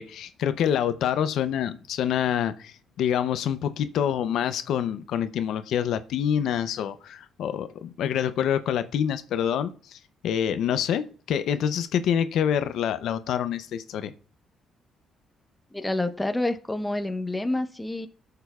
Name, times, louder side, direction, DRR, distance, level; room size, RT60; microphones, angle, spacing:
voice 1, 0.0-14.1, left 9 dB, 80° left, 0.5 m, -26 dB
voice 2, 15.7-18.1, left 2 dB, 10° left, 0.9 m, -28 dB
19.0 x 6.8 x 2.3 m
cardioid pair, 90°, 0 cm